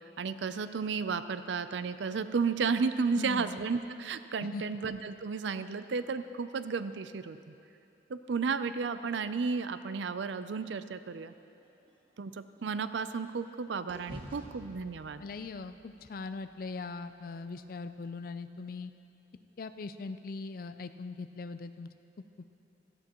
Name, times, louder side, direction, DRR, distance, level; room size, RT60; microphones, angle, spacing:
voice 1, 0.2-7.5 8.1-11.3 12.2-15.2, right 5 dB, 80° right, 12 dB, 0.5 m, -33 dB
voice 2, 3.2-3.5 4.4-4.6 15.2-18.9 19.6-21.9, left 4 dB, 50° left, 10 dB, 0.4 m, -40 dB
sound 1, 11.3-13.5 13.9-18.1, equal, 30° right, 1.7 m, -52 dB
17.0 x 13.5 x 3.0 m, 2.8 s
head